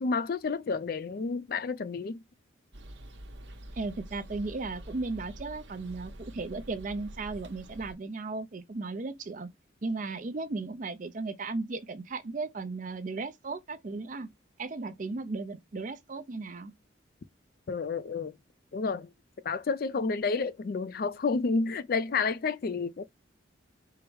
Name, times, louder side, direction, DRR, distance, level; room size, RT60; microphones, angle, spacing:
voice 1, 0.0-2.2 17.7-18.4 18.7-19.1 19.4-23.1, left 4 dB, 50° left, 0.3 m, -30 dB
sound 1, 2.7-7.9, right 1 dB, 70° right, 0.9 m, -46 dB
voice 2, 3.8-9.5 9.8-14.3 14.6-16.7, right 3 dB, 40° right, 0.5 m, -36 dB
4.7 x 2.0 x 4.6 m
head